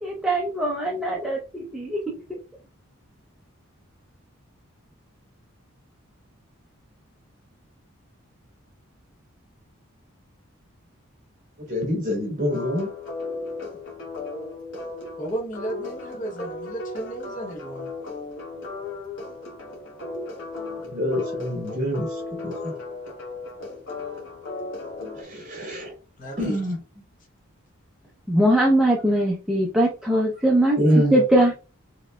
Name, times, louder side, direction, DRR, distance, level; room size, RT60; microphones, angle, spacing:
voice 1, 0.0-2.0 28.3-31.5, right 1 dB, 5° right, 0.6 m, -21 dB
voice 2, 11.7-12.9 20.9-22.7 25.1-25.9 26.4-26.8 30.8-31.2, equal, 40° right, 2.2 m, -25 dB
sound 1, 12.5-25.2, left 3 dB, 65° left, 1.8 m, -35 dB
voice 3, 15.2-17.9 26.2-26.7 31.4-31.5, right 1 dB, 35° left, 0.9 m, -34 dB
5.0 x 3.3 x 2.2 m
head